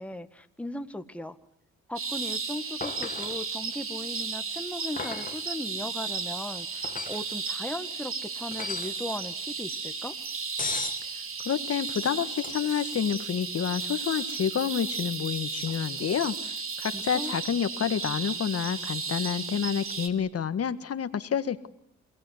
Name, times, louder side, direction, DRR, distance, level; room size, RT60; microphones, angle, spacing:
voice 1, 0.0-1.4 1.9-10.2 16.9-17.3, left 1 dB, 5° left, 8 dB, 1.8 m, -38 dB
sound 1, 1.9-20.1, right 5 dB, 45° right, 3.6 m, -34 dB
sound 2, 2.8-3.4 5.0-5.4 6.8-7.3 8.5-9.0 10.6-11.0 12.4-12.8 15.6-15.7, left 5 dB, 25° left, 2.1 m, -36 dB
voice 2, 11.4-16.3 16.8-21.7, left 8 dB, 50° left, 12 dB, 1.6 m, -29 dB
28.0 x 18.0 x 9.6 m, 0.68 s
cardioid pair, 90°, 30 cm